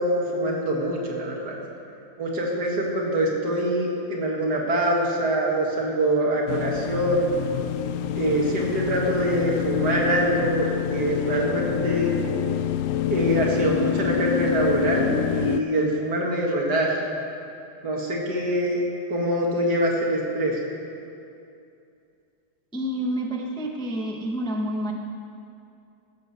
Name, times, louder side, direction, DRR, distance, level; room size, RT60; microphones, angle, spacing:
voice 1, 0.0-1.6 2.2-7.3 8.2-12.1 13.1-17.0 17.8-18.8 19.1-20.6, right 1 dB, 65° right, -1 dB, 2.4 m, -24 dB
sound 1, 6.5-15.6, left 9 dB, 85° left, 0.7 m, -27 dB
voice 2, 22.7-24.9, equal, 5° left, 0 dB, 0.6 m, -28 dB
15.5 x 8.0 x 6.8 m, 2.6 s
omnidirectional pair, 1.9 m